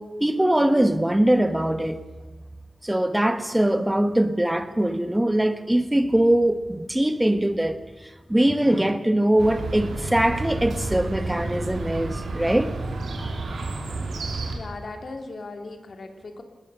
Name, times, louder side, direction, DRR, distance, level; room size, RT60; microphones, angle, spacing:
voice 1, 0.0-2.0 2.8-12.7, right 1 dB, 10° right, 10 dB, 1.2 m, -22 dB
Chirp tweet, 9.4-14.6, right 2 dB, 90° right, 3.2 m, -31 dB
voice 2, 14.5-16.4, left 3 dB, 60° left, 6 dB, 2.7 m, -38 dB
20.0 x 19.0 x 6.8 m, 1.2 s
wide cardioid pair, 85°, 0 cm